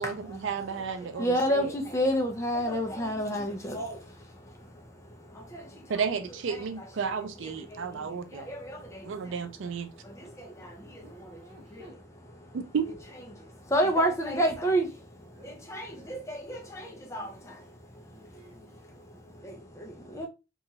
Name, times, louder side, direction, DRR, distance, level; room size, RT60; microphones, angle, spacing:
voice 1, 0.0-1.7 5.9-8.4 9.0-9.9 12.5-12.9, right 6 dB, 85° right, 0.4 m, -32 dB
voice 2, 1.1-4.1 5.3-5.9 6.5-6.6 7.4-8.1 8.3-9.4 10.0-11.4 11.7-12.0 13.4-14.9 15.4-17.7 18.0-18.1 19.4-20.3, equal, 15° left, 0.4 m, -31 dB
voice 3, 11.0-11.9 15.3-15.5 15.8-17.7 18.1-20.3, right 1 dB, 35° right, 1.0 m, -57 dB
2.9 x 2.3 x 2.7 m
head